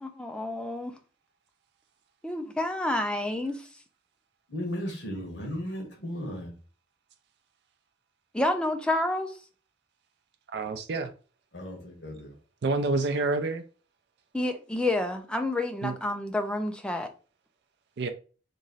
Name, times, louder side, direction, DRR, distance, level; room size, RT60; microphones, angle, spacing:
voice 1, 0.0-0.9 2.2-3.7 8.3-9.3 14.3-17.1, left 1 dB, 5° left, 0.4 m, -29 dB
voice 2, 4.5-6.5 11.5-12.3, equal, 70° left, 1.3 m, -35 dB
voice 3, 10.5-11.1 12.6-13.6 15.8-16.0 18.0-18.1, right 3 dB, 60° right, 0.4 m, -28 dB
3.1 x 2.5 x 3.9 m
head